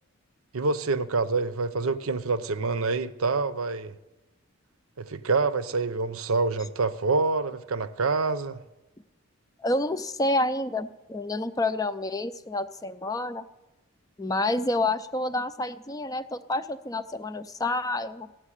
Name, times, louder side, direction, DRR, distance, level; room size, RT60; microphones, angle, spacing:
voice 1, 0.5-3.9 5.0-8.6, right 3 dB, 80° right, 0.7 m, -26 dB
voice 2, 9.6-13.4 14.2-18.3, left 2 dB, 15° left, 0.4 m, -28 dB
15.5 x 7.4 x 9.9 m
head